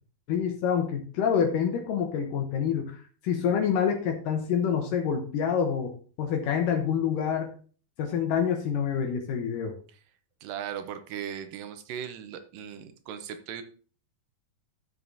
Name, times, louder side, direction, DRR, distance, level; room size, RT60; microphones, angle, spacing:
voice 1, 0.3-5.9 6.2-7.5 8.0-9.8, left 7 dB, 70° left, 4 dB, 2.4 m, -27 dB
voice 2, 10.4-13.6, right 9 dB, 75° right, 9 dB, 2.3 m, -38 dB
12.5 x 7.3 x 2.7 m, 0.40 s
omnidirectional pair, 4.2 m